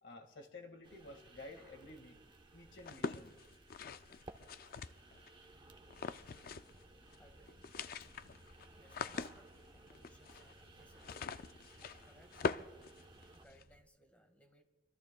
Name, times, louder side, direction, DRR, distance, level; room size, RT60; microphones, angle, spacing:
voice 1, 0.0-2.2 2.5-3.4, left 2 dB, 75° left, 4 dB, 1.9 m, -52 dB
sound 1, 0.8-13.5, right 2 dB, 25° right, 1.0 m, -60 dB
sound 2, 2.8-5.3 5.9-6.8 7.1-7.2 7.5-13.6, left 5 dB, 50° left, 0.4 m, -43 dB
sound 3, 5.5-13.8, equal, 80° right, 1.7 m, -66 dB
voice 2, 7.2-7.7 8.0-8.1 8.7-11.3 12.0-12.4 13.3-14.6, equal, 10° left, 5 dB, 1.6 m, -66 dB
25.0 x 23.5 x 2.3 m, 1.2 s
head